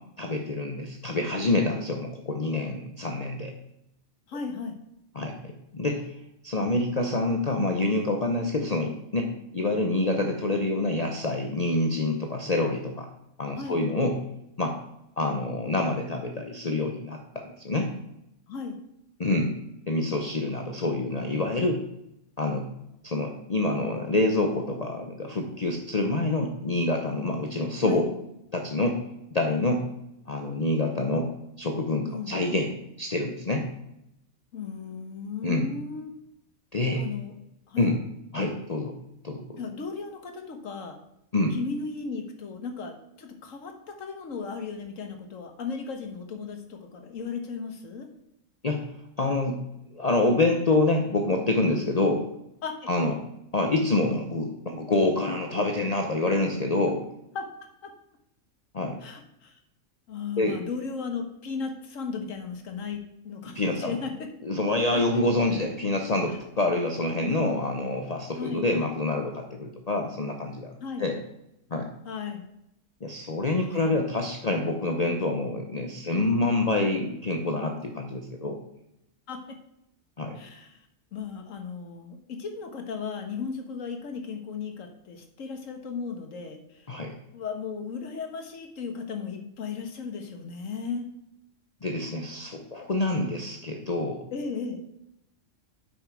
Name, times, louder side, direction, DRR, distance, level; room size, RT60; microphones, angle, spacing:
voice 1, 0.2-3.5 5.1-6.1 6.4-13.1 13.4-14.2 14.6-14.8 15.2-17.9 19.2-19.5 19.9-21.8 22.4-22.7 23.0-28.1 28.5-29.0 29.3-29.8 30.3-33.7 35.4-35.7 36.7-37.0 37.8-38.0 38.3-38.9 39.2-39.6 41.3-41.5 48.6-48.8 49.2-49.6 49.9-52.2 52.9-53.2 53.5-57.0 58.7-59.0 60.4-60.6 63.5-64.0 64.4-70.7 71.0-71.2 71.7-71.9 73.0-78.6 80.2-80.4 86.9-87.2 91.8-94.3, left 2 dB, 35° left, 3 dB, 0.7 m, -27 dB
voice 2, 4.3-4.8 13.5-13.8 18.5-18.8 27.8-28.0 32.0-32.4 34.5-36.1 37.0-37.3 37.7-37.9 39.6-41.0 41.5-48.1 52.6-52.9 57.3-57.4 59.0-59.6 60.1-64.3 64.9-65.0 68.4-68.7 70.8-71.0 72.0-72.4 73.5-74.0 79.3-79.6 80.3-80.8 81.1-86.9 87.3-91.1 94.3-94.8, left 5 dB, 90° left, 5 dB, 1.6 m, -36 dB
8.3 x 6.0 x 4.6 m, 0.82 s
omnidirectional pair, 1.3 m